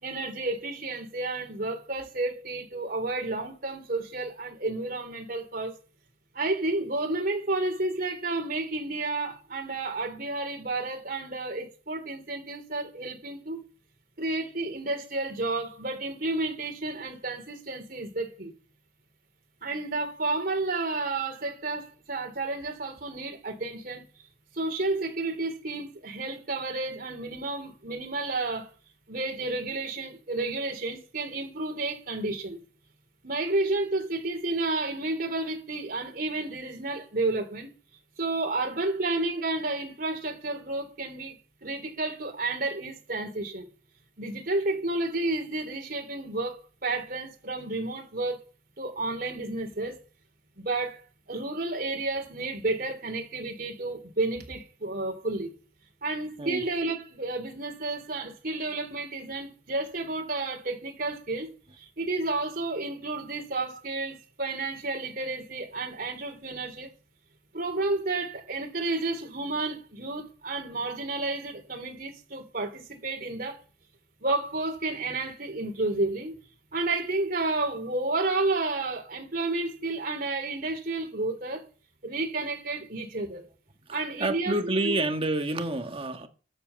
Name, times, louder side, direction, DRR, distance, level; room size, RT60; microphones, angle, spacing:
voice 1, 0.0-5.7 6.3-13.6 14.2-18.5 19.6-24.0 24.5-28.7 29.1-32.6 33.2-37.7 38.2-41.4 41.6-43.7 44.2-48.4 48.8-50.0 50.6-51.0 51.3-55.5 56.0-61.5 61.8-66.9 67.5-73.6 74.2-76.3 76.7-81.6 82.0-83.4 83.9-84.9, right 2 dB, 55° right, 3.6 m, -31 dB
voice 2, 84.2-86.3, right 2 dB, 30° right, 1.6 m, -28 dB
13.0 x 8.0 x 7.0 m
head